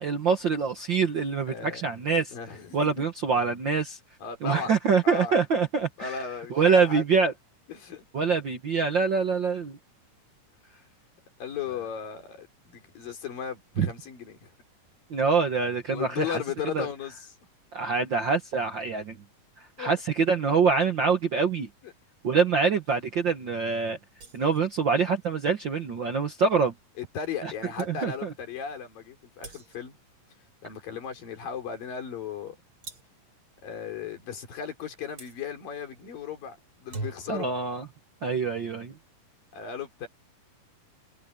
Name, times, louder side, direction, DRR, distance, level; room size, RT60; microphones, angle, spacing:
voice 1, 0.0-2.3 2.7-4.0 4.4-6.2 6.5-7.3 8.1-9.8 13.8-13.9 15.1-16.4 16.7-16.9 17.7-19.2 19.8-21.7 22.2-24.0 24.3-26.7 27.4-27.5 27.9-28.3 37.3-37.8 38.2-38.9, right 5 dB, 55° right, 1.3 m, -25 dB
voice 2, 1.5-1.8 2.3-3.1 4.2-4.7 5.0-5.4 6.0-7.0 7.7-8.0 11.4-14.5 15.9-17.3 19.8-19.9 21.8-21.9 27.0-30.0 30.6-32.6 33.6-37.5 39.5-40.1, left 7 dB, 85° left, 5.5 m, -36 dB
sound 1, 24.2-24.7 27.4-27.5 27.8-28.0 29.4-30.0 32.8-33.3 35.2-35.4 36.7-37.5, right 2 dB, 40° right, 5.5 m, -41 dB
omnidirectional pair, 3.9 m